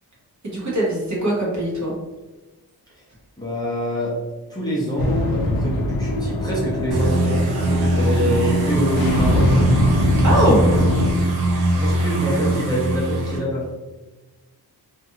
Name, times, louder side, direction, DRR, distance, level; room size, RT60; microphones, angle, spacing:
voice 1, 0.4-1.9 10.2-10.6, right 1 dB, 45° right, -5 dB, 0.9 m, -21 dB
voice 2, 3.4-4.1 4.5-9.6 10.2-10.9 11.7-13.7, right 1 dB, 10° left, -7 dB, 0.7 m, -26 dB
sound 1, 5.0-11.1, left 1 dB, 60° left, 0.5 m, -22 dB
sound 2, 6.9-13.4, right 1 dB, 65° right, 0.6 m, -21 dB
2.6 x 2.5 x 2.6 m, 1.2 s
wide cardioid pair, 120°, 40 cm